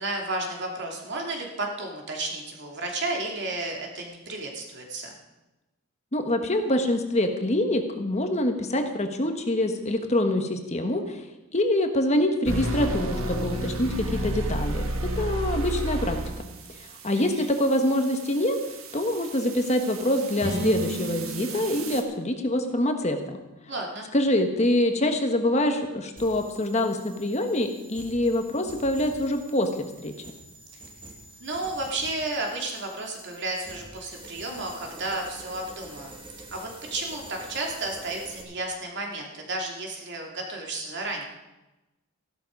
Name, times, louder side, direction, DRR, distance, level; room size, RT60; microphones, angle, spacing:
voice 1, 0.0-5.2 17.1-17.4 23.7-24.1 31.4-36.2 36.5-41.2, right 2 dB, 55° right, 1 dB, 2.8 m, -32 dB
voice 2, 6.1-11.2 11.5-16.2 16.8-18.6 18.9-23.4 24.1-30.1, left 1 dB, 30° left, 6 dB, 1.2 m, -25 dB
sound 1, 12.5-22.0, right 1 dB, 70° right, 1.6 m, -32 dB
sound 2, 20.4-24.2, equal, 90° right, 6.6 m, -36 dB
sound 3, 26.2-38.4, right 2 dB, 25° right, 1.9 m, -47 dB
15.0 x 12.0 x 5.3 m, 1.0 s
head